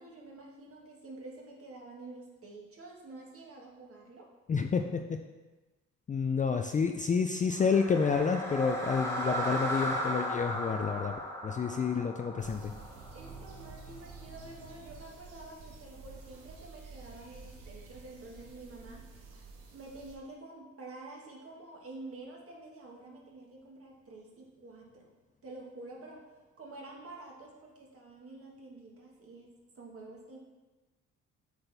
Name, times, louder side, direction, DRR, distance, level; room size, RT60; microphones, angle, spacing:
voice 1, 0.0-4.3 9.2-9.6 13.1-25.1 25.4-26.2 26.6-30.4, right 2 dB, 45° right, -2 dB, 1.6 m, -49 dB
voice 2, 4.5-5.2 6.1-11.1 11.4-12.7, left 5 dB, 25° left, 5 dB, 0.4 m, -29 dB
sound 1, 7.5-13.7, equal, 10° left, 1.3 m, -36 dB
sound 2, 12.4-20.2, right 4 dB, 80° right, 1.1 m, -50 dB
7.9 x 4.1 x 3.4 m, 1.2 s
cardioid pair, 85°, 31 cm